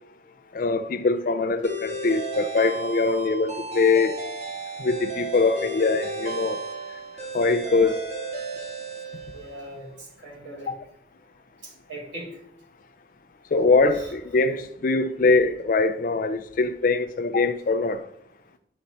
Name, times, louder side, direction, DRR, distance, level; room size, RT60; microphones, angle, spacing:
voice 1, 0.5-4.1 4.8-6.6 7.3-8.1 10.7-10.8 13.5-18.0, left 3 dB, 45° left, 0.4 m, -22 dB
sound 1, 1.6-9.8, right 2 dB, 40° right, 2.1 m, -34 dB
voice 2, 9.2-10.7 11.6-12.4, right 1 dB, 80° right, 3.6 m, -40 dB
11.0 x 4.1 x 4.1 m
head